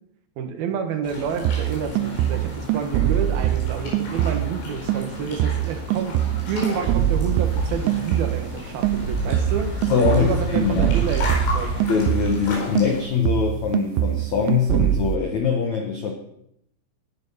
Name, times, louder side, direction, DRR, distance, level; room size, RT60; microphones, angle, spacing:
voice 1, 0.4-6.2 6.5-9.7 10.1-11.9, right 6 dB, 65° right, 6 dB, 3.0 m, -29 dB
sound 1, 1.0-13.0, left 2 dB, 80° left, 7.1 m, -34 dB
sound 2, 1.5-4.6 4.9-8.6 8.8-12.5 12.8-15.2, right 12 dB, 90° right, 3.2 m, -23 dB
sound 3, 6.8-11.9, right 1 dB, 35° right, 1.0 m, -31 dB
voice 2, 9.9-10.9 11.9-16.1, left 6 dB, 60° left, 3 dB, 2.0 m, -22 dB
16.0 x 10.5 x 5.8 m, 0.75 s
omnidirectional pair, 5.2 m